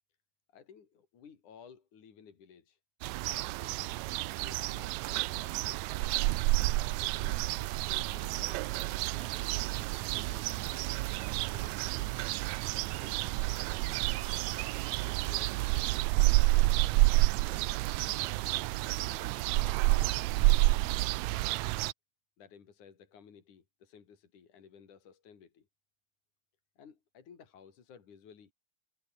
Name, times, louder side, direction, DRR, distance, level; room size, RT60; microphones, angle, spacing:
voice 1, 0.5-2.8 3.3-4.1 4.4-6.2 6.6-7.4 7.7-8.7 9.1-11.0 11.3-12.2 12.7-16.9 17.4-18.4 18.8-21.0 22.4-25.7 26.8-28.5, left 7 dB, 70° left, 4.5 m, -56 dB
sound 1, 3.0-21.9, right 20 dB, 80° right, 1.7 m, -30 dB
omnidirectional pair, 3.6 m